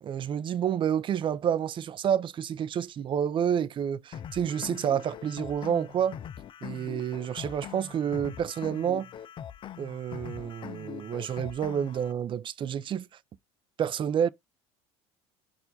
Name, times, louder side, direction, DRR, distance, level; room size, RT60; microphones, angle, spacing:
voice 1, 0.0-6.2 6.6-9.1 9.8-13.1 13.8-14.3, right 8 dB, 35° right, 0.5 m, -29 dB
sound 1, 4.1-12.1, left 9 dB, 35° left, 0.4 m, -42 dB
4.4 x 2.5 x 4.0 m
hypercardioid pair, 85°, 14 cm